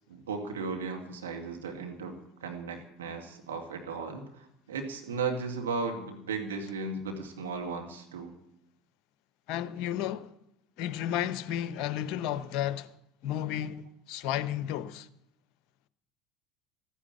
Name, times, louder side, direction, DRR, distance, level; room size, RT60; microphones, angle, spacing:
voice 1, 0.1-2.1 2.4-8.3, right 4 dB, 80° right, 2.1 m, -36 dB
voice 2, 9.5-10.3 10.8-12.9 13.2-15.1, left 11 dB, 60° left, 0.8 m, -32 dB
14.0 x 9.8 x 8.8 m
hypercardioid pair, 70°, 0 cm